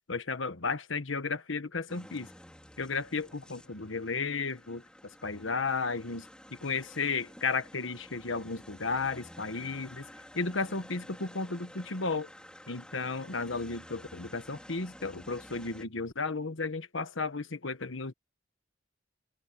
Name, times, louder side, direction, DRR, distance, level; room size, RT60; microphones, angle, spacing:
voice 1, 0.1-2.3 2.8-4.8 5.2-10.0 10.3-12.3 12.7-18.1, left 4 dB, 85° left, 1.4 m, -34 dB
sound 1, 1.9-15.9, equal, 5° left, 5.0 m, -52 dB
head